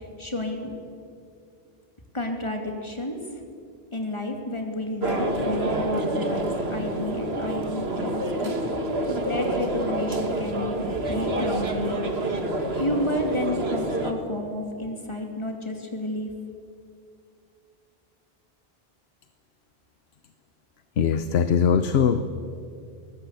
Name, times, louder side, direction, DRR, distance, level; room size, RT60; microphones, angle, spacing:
voice 1, 0.2-0.7 2.1-3.2 3.9-8.6 9.2-12.0 12.7-16.3, left 1 dB, 30° left, 2 dB, 3.0 m, -31 dB
sound 1, 5.0-14.1, right 1 dB, 80° right, 2.1 m, -27 dB
voice 2, 21.0-22.2, left 7 dB, 80° left, 11 dB, 1.1 m, -21 dB
22.0 x 19.0 x 8.4 m, 2.4 s
omnidirectional pair, 1.0 m